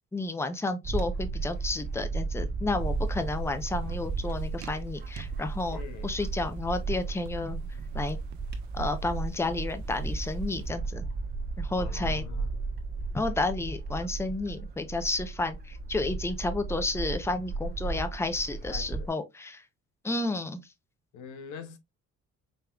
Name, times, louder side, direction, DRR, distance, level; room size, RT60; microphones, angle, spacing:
voice 1, 0.1-7.6 7.9-8.2 8.7-11.0 11.6-12.2 13.1-19.6 20.0-20.6, left 2 dB, 10° left, 0.6 m, -31 dB
Bird / Wind, 0.8-19.1, right 3 dB, 35° right, 1.2 m, -34 dB
Thunder / Rain, 2.8-10.4, right 7 dB, 70° right, 0.5 m, -42 dB
voice 2, 5.7-6.2 11.8-12.5 18.7-19.1 21.1-21.8, left 7 dB, 80° left, 0.9 m, -43 dB
5.2 x 3.1 x 2.3 m
cardioid pair, 90°, 30 cm